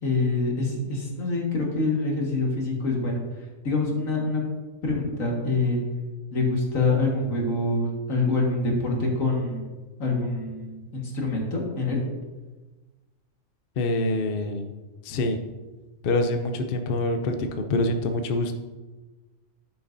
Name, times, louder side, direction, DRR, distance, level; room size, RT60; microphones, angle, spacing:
voice 1, 0.0-3.2 3.6-4.4 4.8-5.8 6.3-9.7 10.0-12.0 15.1-15.2, left 3 dB, 75° left, -1 dB, 2.2 m, -25 dB
voice 2, 13.8-14.7 15.0-15.4 16.0-18.5, left 2 dB, 50° left, 6 dB, 0.7 m, -25 dB
10.5 x 9.0 x 2.7 m, 1.2 s
omnidirectional pair, 1.4 m